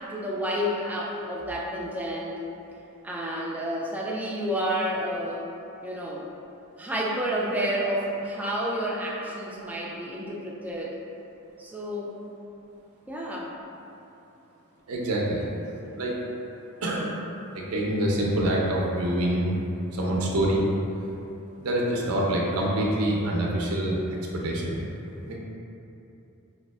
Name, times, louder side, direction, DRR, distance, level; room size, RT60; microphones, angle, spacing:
voice 1, 0.1-2.4 3.0-5.5 5.8-6.2 6.8-11.0 11.6-12.1 13.1-13.5, equal, 5° right, -3 dB, 0.3 m, -30 dB
voice 2, 14.9-15.5 16.0-16.2 16.8-17.1 17.5-19.5 19.9-20.6 21.6-24.0 24.3-24.8 25.3-25.4, right 1 dB, 85° right, -3 dB, 0.5 m, -26 dB
4.9 x 2.3 x 2.3 m, 2.9 s
head